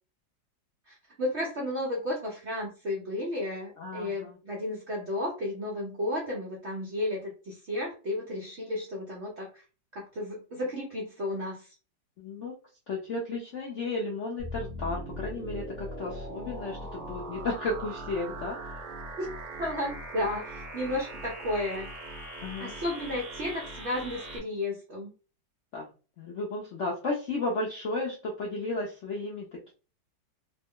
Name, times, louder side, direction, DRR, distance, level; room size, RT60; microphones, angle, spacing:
voice 1, 0.9-9.6 9.9-11.7 19.2-19.3 19.6-22.0 22.6-25.1, left 1 dB, 60° right, -2 dB, 0.7 m, -33 dB
voice 2, 3.8-4.4 12.2-12.5 12.9-18.6 22.4-22.7 25.7-25.9 26.2-29.5, left 2 dB, 70° left, -3 dB, 0.7 m, -33 dB
sound 1, 14.4-24.4, right 1 dB, 30° right, 0.9 m, -40 dB
3.0 x 2.1 x 3.5 m, 0.35 s
omnidirectional pair, 2.0 m